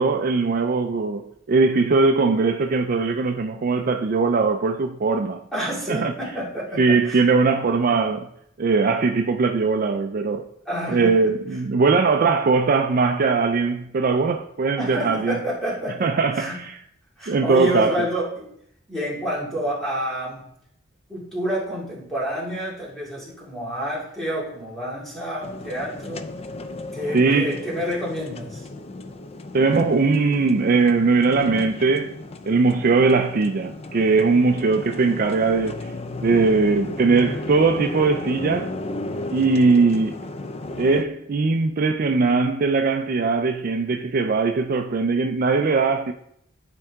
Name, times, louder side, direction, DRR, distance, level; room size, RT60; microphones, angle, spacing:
voice 1, 0.0-5.4 5.9-6.1 6.8-8.3 8.6-10.5 10.9-15.4 16.0-16.8 17.3-18.1 27.1-27.6 29.5-32.2 32.5-35.9 36.2-38.7 39.3-40.2 40.8-46.1, right 4 dB, 45° right, 0.4 m, -20 dB
voice 2, 5.5-7.3 10.7-11.3 14.8-16.6 17.2-18.5 18.9-20.4 21.1-26.3 26.9-28.7, equal, ahead, 2.6 m, -29 dB
sound 1, 25.4-41.0, left 2 dB, 30° left, 0.4 m, -34 dB
10.5 x 4.5 x 3.6 m
head